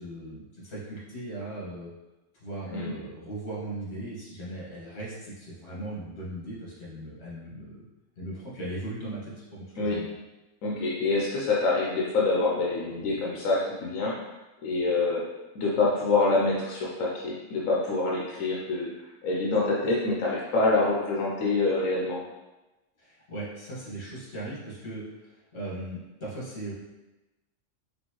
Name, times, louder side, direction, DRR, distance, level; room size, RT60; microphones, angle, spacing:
voice 1, 0.0-1.9 2.4-7.8 8.2-10.1 23.0-26.7, right 1 dB, 55° left, -7 dB, 1.8 m, -38 dB
voice 2, 2.6-2.9 9.8-10.0 10.6-14.3 14.6-15.2 15.5-18.9 19.2-22.2, left 3 dB, 90° left, -4 dB, 1.1 m, -26 dB
4.3 x 3.6 x 3.0 m, 1.1 s
omnidirectional pair, 1.3 m